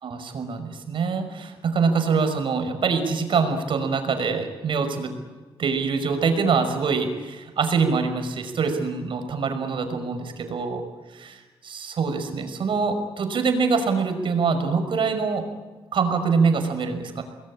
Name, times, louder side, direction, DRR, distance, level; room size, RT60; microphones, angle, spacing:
voice 1, 0.0-5.1 5.6-10.8 11.1-15.5 15.9-17.2, right 5 dB, 65° right, 7 dB, 5.7 m, -24 dB
29.5 x 21.0 x 8.8 m, 1.3 s
cardioid pair, 100°, 9 cm